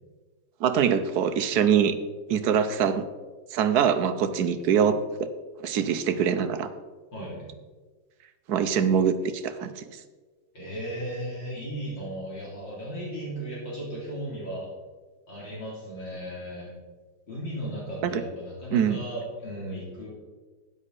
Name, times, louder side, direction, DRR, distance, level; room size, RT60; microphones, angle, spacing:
voice 1, 0.6-2.0 2.3-3.0 3.5-5.3 5.6-6.7 8.5-10.0 18.0-18.2 18.7-19.0, right 7 dB, 65° right, 9 dB, 1.1 m, -24 dB
voice 2, 7.1-7.5 10.5-14.7 15.3-16.7 17.3-20.1, right 1 dB, 65° left, -6 dB, 4.1 m, -36 dB
12.5 x 9.8 x 4.1 m, 1.3 s
omnidirectional pair, 2.2 m